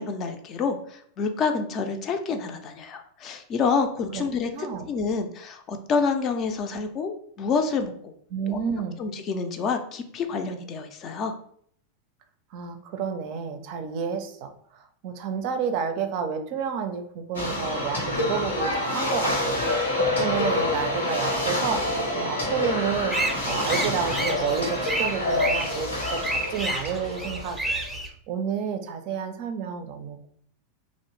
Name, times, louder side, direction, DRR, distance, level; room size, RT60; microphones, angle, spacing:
voice 1, 0.0-8.1 8.5-8.6 9.0-11.3, left 5 dB, 40° left, 6 dB, 0.4 m, -28 dB
voice 2, 4.5-4.9 8.3-9.0 12.5-19.6 20.0-23.1 23.4-27.8 28.3-30.3, right 6 dB, 50° right, 7 dB, 0.4 m, -30 dB
sound 1, 17.3-27.8, left 1 dB, 85° left, 0.8 m, -27 dB
sound 2, 23.1-28.1, right 2 dB, 5° right, 0.6 m, -30 dB
2.6 x 2.0 x 3.0 m, 0.62 s
hypercardioid pair, 90°, 0 cm